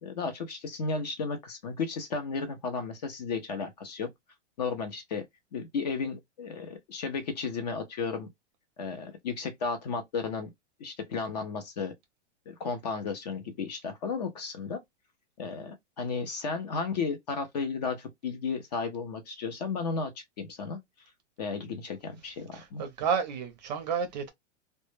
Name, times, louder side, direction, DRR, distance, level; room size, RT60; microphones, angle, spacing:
voice 1, 0.0-4.1 4.6-5.2 5.5-8.3 8.8-10.5 10.8-11.9 12.5-14.8 15.4-20.8 21.4-22.8, left 4 dB, 35° left, 0.4 m, -34 dB
voice 2, 22.5-24.3, right 6 dB, 40° right, 0.5 m, -31 dB
2.1 x 2.0 x 3.0 m
supercardioid pair, 165°, 36 cm